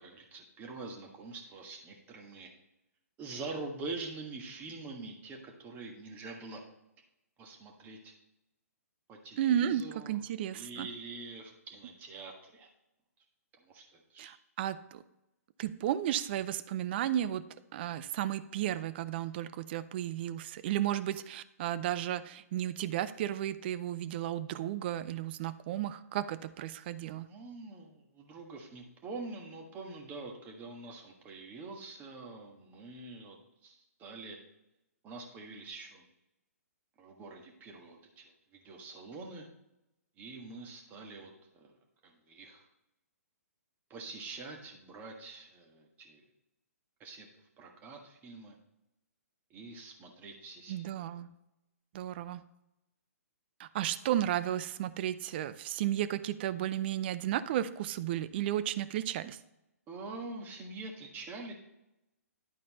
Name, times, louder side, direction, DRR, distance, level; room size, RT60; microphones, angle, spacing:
voice 1, 0.0-2.5 3.2-6.6 7.4-8.1 9.1-10.2 10.5-12.7 13.6-14.3 27.2-33.4 33.6-34.4 35.0-36.0 37.0-39.5 40.2-41.8 42.0-42.7 43.9-46.2 47.0-47.3 47.6-48.5 49.5-51.0 59.9-61.5, right 3 dB, 20° right, 1 dB, 1.5 m, -45 dB
voice 2, 9.4-10.9 14.2-15.0 15.6-17.4 17.7-27.3 50.7-51.3 51.9-52.4 53.6-59.4, right 11 dB, 40° right, 13 dB, 0.5 m, -33 dB
11.0 x 4.2 x 4.1 m, 0.89 s
hypercardioid pair, 135°, 8 cm